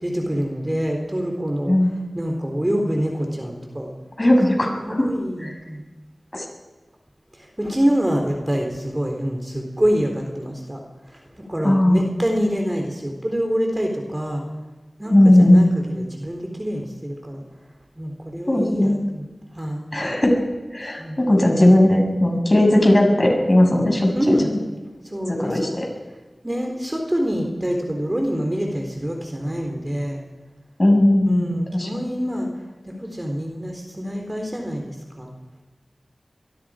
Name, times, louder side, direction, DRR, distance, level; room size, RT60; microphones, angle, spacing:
voice 1, 0.0-3.9 4.8-5.9 7.3-10.8 11.1-14.4 15.0-17.4 18.0-19.3 19.5-19.8 21.0-21.3 24.1-24.5 25.0-25.7 26.4-30.2 31.3-32.5 32.8-35.3, equal, 20° right, 2 dB, 3.5 m, -26 dB
voice 2, 4.2-5.1 5.4-5.5 6.3-6.4 11.6-12.1 15.1-15.7 18.5-19.0 19.9-20.4 20.7-24.4 25.3-25.9 30.8-31.9, left 1 dB, 30° left, 2 dB, 6.4 m, -17 dB
25.0 x 21.5 x 5.0 m, 1.1 s
wide cardioid pair, 70°, 0 cm